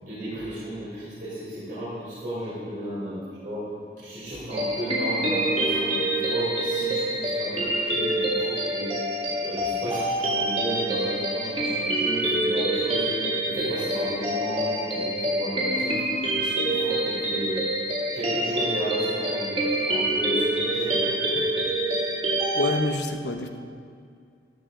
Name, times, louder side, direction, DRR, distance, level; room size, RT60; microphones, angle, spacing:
voice 1, 0.0-3.7 4.0-9.0 9.4-13.1 13.4-17.6 18.1-19.6 19.8-21.4, equal, 50° right, -11 dB, 3.9 m, -34 dB
sound 1, 4.5-22.8, right 1 dB, 35° right, 2.0 m, -26 dB
voice 2, 22.5-23.5, left 2 dB, 90° left, 5 dB, 1.0 m, -27 dB
14.0 x 13.5 x 3.8 m, 2.4 s
head